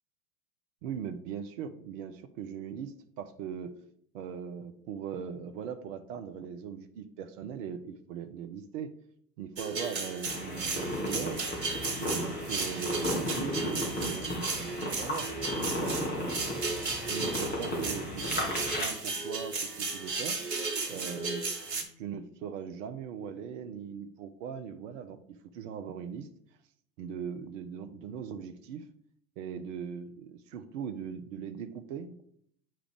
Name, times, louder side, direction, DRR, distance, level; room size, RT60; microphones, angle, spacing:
voice 1, 0.8-3.8 4.1-8.9 9.4-11.5 12.0-15.3 15.8-16.8 17.1-20.4 20.9-21.4 22.0-26.3 27.0-28.9 29.4-32.2, right 7 dB, 50° right, 9 dB, 0.7 m, -40 dB
sound 1, 9.6-21.8, right 3 dB, 80° right, 1.3 m, -35 dB
sound 2, 10.2-18.9, left 1 dB, 20° left, 2.0 m, -35 dB
8.9 x 4.9 x 3.4 m, 0.68 s
figure-of-eight pair, 85°, 48 cm